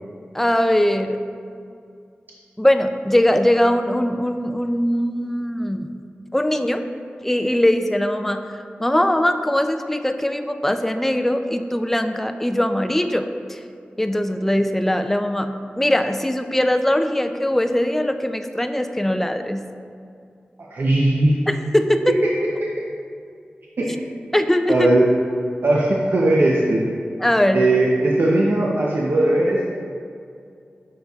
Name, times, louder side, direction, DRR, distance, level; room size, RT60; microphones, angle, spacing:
voice 1, 0.3-1.2 2.6-5.9 6.3-6.9 7.2-13.6 14.0-19.6 21.5-22.1 24.3-24.9 27.2-27.6, left 1 dB, 5° left, 7 dB, 0.3 m, -21 dB
voice 2, 20.7-21.4 22.2-22.3 22.6-22.7 23.8-23.9 24.7-25.1 25.6-26.8 27.5-29.8, right 1 dB, 65° right, -3 dB, 0.6 m, -18 dB
6.7 x 6.3 x 2.3 m, 2.4 s
wide cardioid pair, 75°, 4 cm